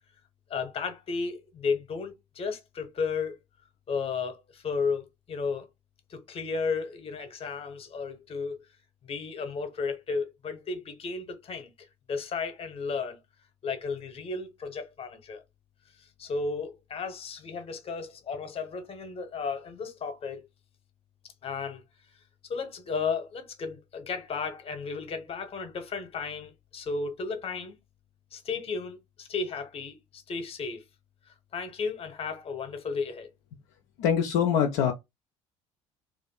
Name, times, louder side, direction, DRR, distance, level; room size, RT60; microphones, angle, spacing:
voice 1, 0.5-3.4 3.9-5.7 6.1-8.6 9.0-11.7 12.1-13.2 13.6-15.4 16.2-20.4 21.4-21.8 22.5-27.8 28.3-30.8 31.5-33.3, left 5 dB, 35° left, 0.8 m, -34 dB
voice 2, 34.0-34.9, left 8 dB, 60° left, 0.4 m, -24 dB
2.5 x 2.4 x 3.7 m
figure-of-eight pair, 60°, 17 cm